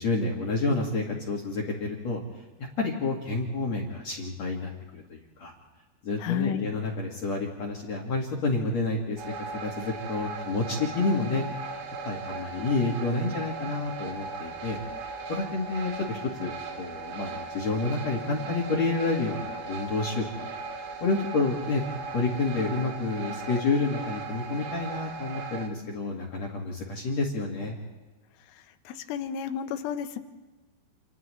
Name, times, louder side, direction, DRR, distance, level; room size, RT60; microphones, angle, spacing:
voice 1, 0.0-2.2 2.8-5.5 6.0-9.2 9.6-11.4 12.0-14.8 15.3-16.5 16.8-20.5 20.7-21.8 22.1-27.8, left 3 dB, 50° left, -2 dB, 2.2 m, -29 dB
voice 2, 6.2-6.7 28.9-30.2, left 8 dB, 80° left, 8 dB, 2.2 m, -31 dB
sound 1, 9.2-25.7, right 4 dB, 60° right, 3.2 m, -38 dB
29.5 x 29.0 x 3.2 m, 1.2 s
omnidirectional pair, 5.3 m